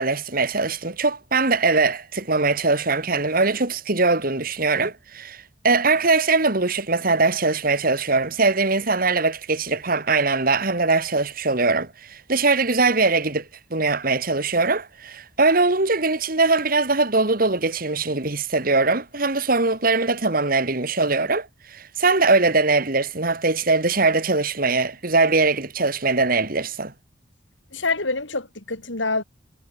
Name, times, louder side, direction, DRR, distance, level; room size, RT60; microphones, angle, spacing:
voice 1, 0.0-26.9, right 3 dB, 50° right, 2.3 m, -21 dB
voice 2, 27.7-29.2, left 3 dB, 80° left, 5.7 m, -26 dB
head